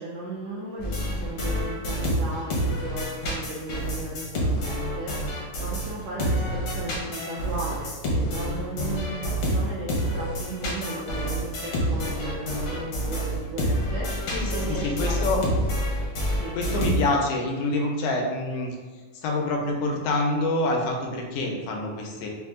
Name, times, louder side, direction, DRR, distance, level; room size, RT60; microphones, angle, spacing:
voice 1, 0.0-15.5 16.2-16.6, right 2 dB, 80° right, -4 dB, 1.6 m, -36 dB
sound 1, 0.8-5.9 6.2-17.3, equal, 65° left, 1.3 m, -28 dB
voice 2, 14.3-15.4 16.5-18.8 19.1-22.3, left 2 dB, 80° left, 1 dB, 2.0 m, -26 dB
5.1 x 2.6 x 3.6 m, 1.4 s
omnidirectional pair, 3.6 m